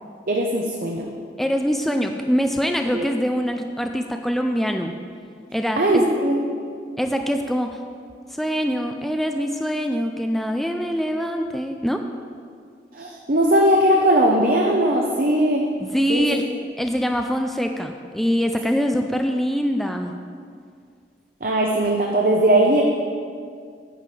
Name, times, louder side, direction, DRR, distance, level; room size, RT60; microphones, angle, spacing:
voice 1, 0.3-1.1 2.9-3.0 5.8-6.6 12.9-15.6 16.1-16.3 21.4-22.8, right 1 dB, 50° right, 0 dB, 0.8 m, -19 dB
voice 2, 1.4-5.0 5.5-6.1 7.0-7.8 8.3-12.0 15.8-16.4 16.8-20.1, equal, ahead, 4 dB, 0.3 m, -24 dB
10.0 x 5.1 x 7.6 m, 2.2 s
head